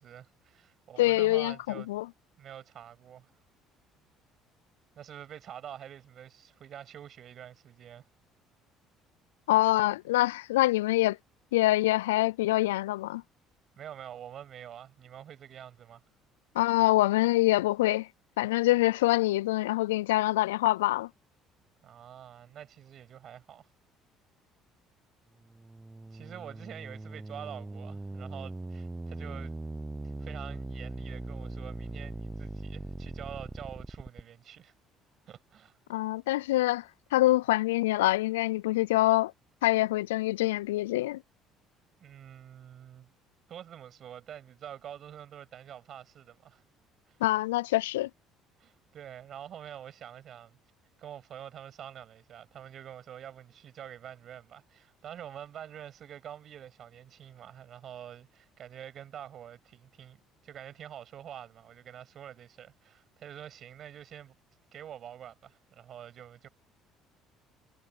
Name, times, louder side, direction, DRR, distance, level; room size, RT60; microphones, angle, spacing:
voice 1, 0.0-1.9 2.4-3.3 4.9-8.1 13.8-16.0 21.8-23.7 26.1-29.5 30.0-34.7 35.3-35.8 42.0-43.1 43.5-46.6 47.1-47.2 48.6-50.6 51.0-64.3 64.7-66.5, right 10 dB, 55° right, 6.6 m, -46 dB
voice 2, 1.0-2.1 9.5-11.2 11.5-13.2 16.6-18.1 18.4-21.1 35.9-36.8 37.1-39.3 39.6-41.2 47.2-48.1, left 17 dB, 85° left, 0.4 m, -25 dB
sound 1, 25.4-34.2, right 2 dB, 15° right, 0.8 m, -40 dB
hypercardioid pair, 65°, 0 cm